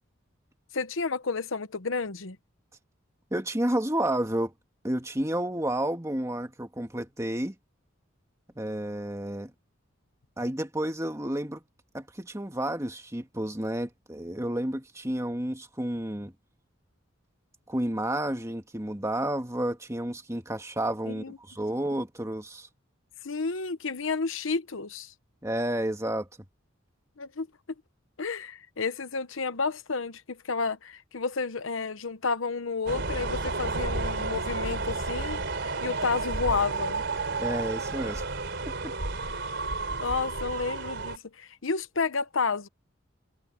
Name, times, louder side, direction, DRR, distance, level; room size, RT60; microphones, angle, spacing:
voice 1, 0.7-2.4 21.1-21.4 23.2-25.1 27.2-27.5 28.2-37.0 40.0-42.7, left 4 dB, 75° left, 1.0 m, -31 dB
voice 2, 3.3-4.5 4.8-7.5 8.6-9.5 10.4-11.6 11.9-16.3 17.7-22.7 25.4-26.3 37.4-38.2 38.8-38.9, right 1 dB, 15° right, 1.8 m, -31 dB
sound 1, 32.9-41.2, right 3 dB, 60° right, 4.1 m, -31 dB
head